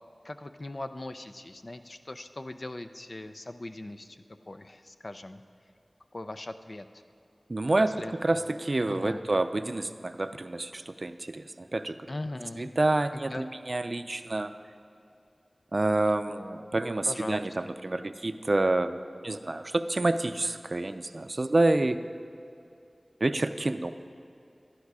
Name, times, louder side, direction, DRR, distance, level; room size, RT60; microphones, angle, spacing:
voice 1, 0.2-5.4 6.1-6.9 8.0-8.5 8.9-9.2 12.1-12.7 13.1-13.5 17.1-17.4, left 2 dB, 50° left, 9 dB, 0.5 m, -40 dB
voice 2, 7.5-12.0 12.6-14.5 15.7-22.0 23.2-23.9, right 2 dB, 55° right, 10 dB, 0.5 m, -28 dB
12.0 x 10.5 x 4.9 m, 2.6 s
wide cardioid pair, 60°, 0 cm